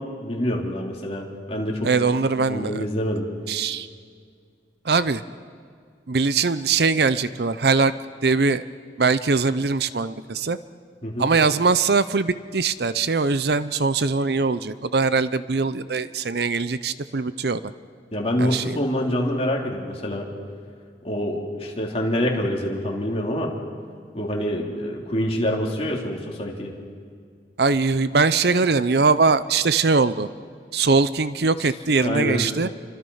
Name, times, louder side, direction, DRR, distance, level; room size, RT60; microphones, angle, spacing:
voice 1, 0.0-1.9 2.5-3.3 11.0-11.3 18.1-20.3 21.0-23.5 24.1-26.7 32.0-32.4, equal, 35° left, -1 dB, 3.4 m, -26 dB
voice 2, 1.8-2.8 3.5-3.9 4.8-5.2 6.1-7.9 8.2-8.6 9.0-10.6 11.2-17.7 18.4-18.8 27.6-30.3 30.7-32.7, right 4 dB, 60° right, 14 dB, 0.6 m, -21 dB
29.5 x 25.0 x 5.6 m, 2.1 s
head